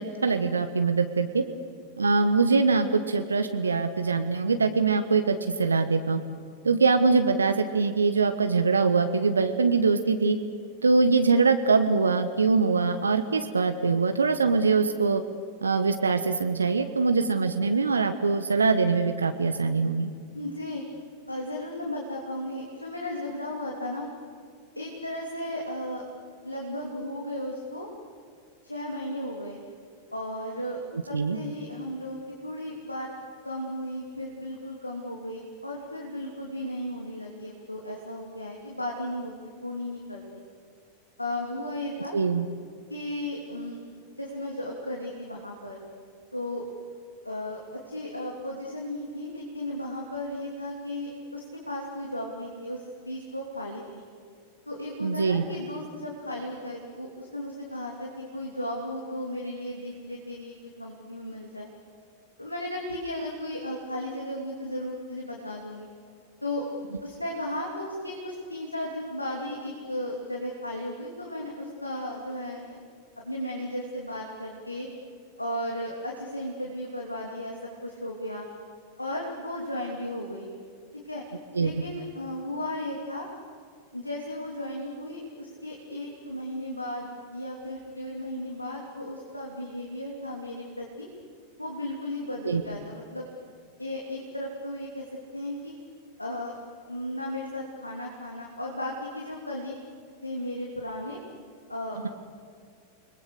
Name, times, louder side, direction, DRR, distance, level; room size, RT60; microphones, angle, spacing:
voice 1, 0.0-1.4 2.0-6.2 6.6-10.4 10.8-15.2 15.6-20.1 31.1-31.4 42.1-42.5 55.0-55.4 81.6-81.7 92.5-92.6, right 4 dB, 75° right, 8 dB, 1.2 m, -23 dB
voice 2, 20.3-20.8 21.3-24.1 24.7-26.0 26.4-27.9 28.6-29.6 30.1-30.8 31.1-33.1 33.4-39.3 39.6-40.2 41.2-42.1 42.9-43.8 44.2-45.8 46.3-46.7 47.2-54.1 54.7-61.7 62.4-65.9 66.4-72.8 73.2-74.9 75.4-78.5 79.0-80.5 81.0-81.2 81.6-83.3 83.9-91.1 91.6-93.3 93.8-95.0 95.3-95.8 96.2-96.6 96.9-99.8 100.2-101.2 101.7-102.0, left 1 dB, 85° left, -1 dB, 3.0 m, -35 dB
29.5 x 21.5 x 6.8 m, 2.2 s
figure-of-eight pair, 90°, 0 cm